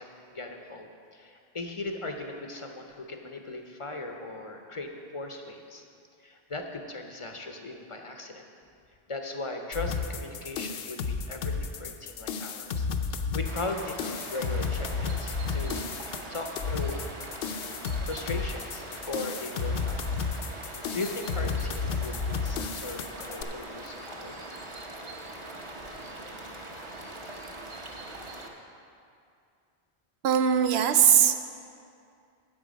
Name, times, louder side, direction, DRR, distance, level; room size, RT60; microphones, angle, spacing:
voice 1, 0.0-5.8 6.2-8.4 9.1-15.9 16.3-17.0 18.0-20.0 20.9-24.4, left 2 dB, 35° left, 4 dB, 0.6 m, -38 dB
sound 1, 9.7-23.4, left 5 dB, 70° left, 0.8 m, -32 dB
sound 2, 13.5-28.5, right 1 dB, 30° right, 0.8 m, -42 dB
voice 2, 30.2-31.3, right 8 dB, 80° right, 9 dB, 0.9 m, -20 dB
10.0 x 7.7 x 5.1 m, 2.4 s
omnidirectional pair, 1.1 m